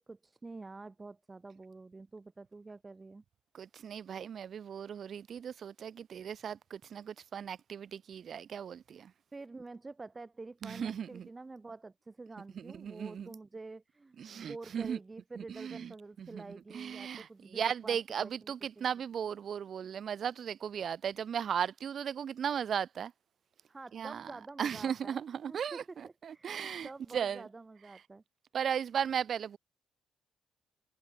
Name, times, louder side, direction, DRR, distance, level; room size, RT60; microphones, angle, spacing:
voice 1, 0.0-3.2 9.3-18.9 23.7-28.2, right 3 dB, 25° right, 5.9 m, -48 dB
voice 2, 3.5-9.1 10.6-11.3 12.5-13.3 14.2-15.0 15.4-15.9 16.2-23.1 23.9-24.3 24.6-27.5 28.5-29.6, right 8 dB, 55° right, 2.2 m, -36 dB
cardioid pair, 90°, 0 cm